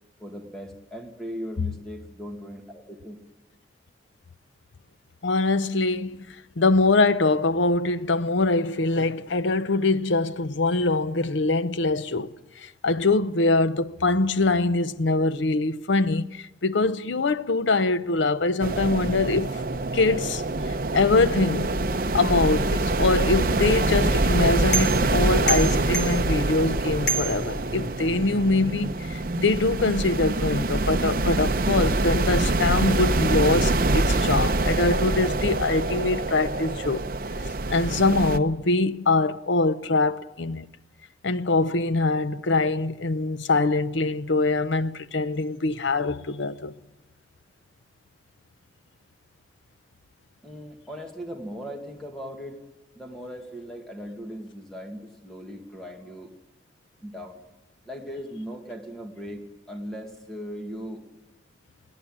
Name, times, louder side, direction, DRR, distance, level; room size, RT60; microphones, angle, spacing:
voice 1, 0.2-3.2 50.4-52.6 53.0-56.3 57.0-57.4 57.9-61.0, equal, 5° left, 1.8 m, -38 dB
voice 2, 5.2-6.3 6.6-12.3 12.6-19.6 19.9-20.4 20.9-21.7 22.1-37.0 37.7-40.7 41.2-46.7, left 3 dB, 85° left, 0.7 m, -23 dB
sound 1, 18.6-38.4, right 2 dB, 50° right, 0.8 m, -25 dB
sound 2, 23.5-28.2, right 2 dB, 65° left, 3.1 m, -32 dB
22.0 x 16.5 x 8.8 m
head